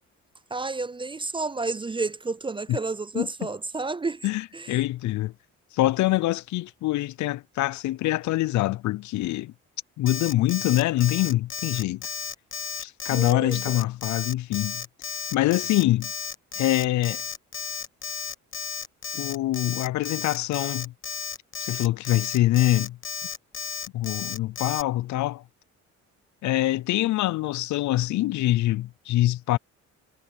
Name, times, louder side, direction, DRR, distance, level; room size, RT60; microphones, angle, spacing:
voice 1, 0.5-4.3 4.5-4.8 13.1-13.8, right 3 dB, 15° right, 0.4 m, -31 dB
voice 2, 4.2-5.3 5.7-9.5 10.0-12.1 12.8-14.8 15.3-16.1 16.6-17.2 19.1-20.9 21.6-23.0 23.9-25.4 26.4-29.6, left 16 dB, 70° left, 0.5 m, -24 dB
Alarm, 10.1-24.8, left 6 dB, 40° left, 1.2 m, -33 dB
cardioid pair, 90°, 30 cm